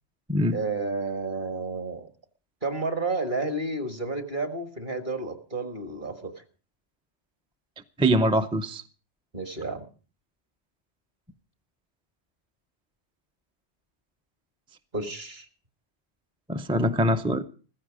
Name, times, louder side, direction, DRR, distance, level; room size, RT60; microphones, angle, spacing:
voice 1, 0.5-2.1 2.6-6.3 9.3-9.8 14.9-15.5, right 3 dB, 40° right, 1.8 m, -31 dB
voice 2, 8.0-8.8 16.5-17.4, equal, 5° right, 0.4 m, -23 dB
15.5 x 14.5 x 5.0 m
omnidirectional pair, 1.2 m